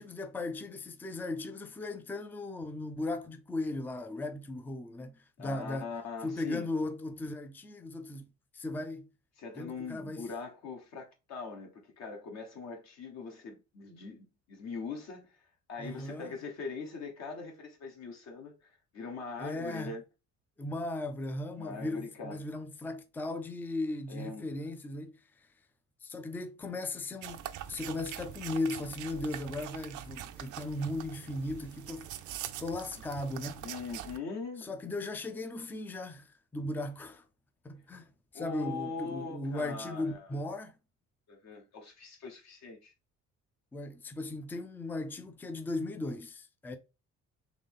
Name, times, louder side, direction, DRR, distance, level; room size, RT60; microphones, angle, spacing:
voice 1, 0.0-5.9 6.2-8.3 8.5-9.1 9.6-10.3 15.8-16.4 19.4-20.0 20.6-25.5 26.0-27.4 27.7-32.1 32.6-33.7 34.6-37.2 37.6-40.7 43.7-46.8, left 2 dB, 5° left, 0.4 m, -37 dB
voice 2, 5.4-6.7 9.4-20.0 21.6-22.4 24.1-24.5 33.6-34.7 38.3-40.3 41.3-42.9, left 4 dB, 55° left, 1.2 m, -42 dB
sound 1, 27.2-34.2, right 11 dB, 70° right, 0.6 m, -43 dB
4.0 x 3.1 x 3.5 m
cardioid pair, 145°, 31 cm